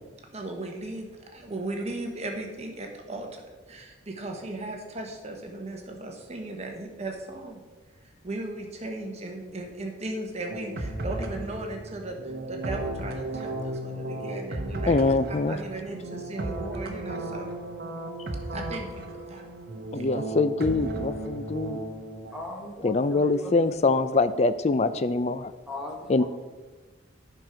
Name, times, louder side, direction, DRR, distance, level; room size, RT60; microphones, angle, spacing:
voice 1, 0.3-7.6 8.0-15.0 15.5-17.5 18.5-19.5 19.9-20.1, right 2 dB, 35° right, 2 dB, 1.2 m, -37 dB
sound 1, 10.5-22.3, right 1 dB, 50° right, 1.0 m, -35 dB
voice 2, 14.9-15.6 19.9-21.8 22.8-25.5 26.1-26.2, left 3 dB, 35° left, 13 dB, 0.4 m, -24 dB
voice 3, 22.3-23.5 25.7-26.2, left 1 dB, 5° right, -2 dB, 1.6 m, -38 dB
10.5 x 6.0 x 4.9 m, 1.3 s
head